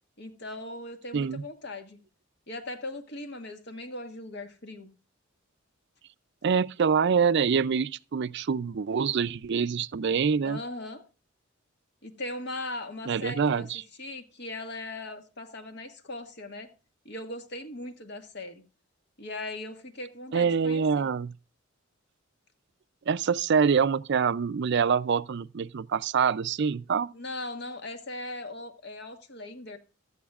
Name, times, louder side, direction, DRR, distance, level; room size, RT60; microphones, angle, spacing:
voice 1, 0.2-2.0 2.5-4.9 10.4-11.0 12.0-13.7 14.0-16.7 17.0-18.6 19.2-21.1 27.1-29.8, left 2 dB, 55° left, 1.7 m, -39 dB
voice 2, 1.1-1.4 6.4-10.6 13.1-13.8 20.3-21.3 23.1-27.1, right 6 dB, 55° right, 0.4 m, -25 dB
16.0 x 12.5 x 2.4 m
head